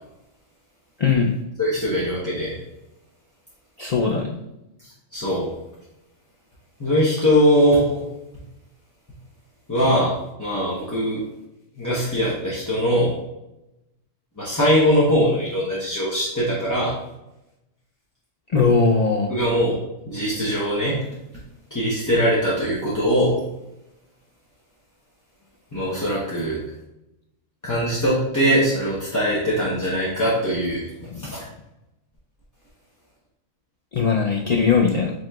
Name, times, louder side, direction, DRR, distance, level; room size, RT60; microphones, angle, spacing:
voice 1, 1.0-1.3 3.8-4.3 18.5-19.3 31.1-31.3 33.9-35.1, left 5 dB, 75° left, -2 dB, 0.3 m, -19 dB
voice 2, 1.6-2.6 5.1-5.5 6.8-8.0 9.7-10.1 10.4-11.2 11.8-13.1 14.4-16.9 19.3-19.7 20.1-21.0 21.7-23.4 25.7-26.6 27.6-30.8 31.2-31.4, equal, 20° left, -7 dB, 0.7 m, -21 dB
7.6 x 2.9 x 2.3 m, 0.91 s
omnidirectional pair, 1.3 m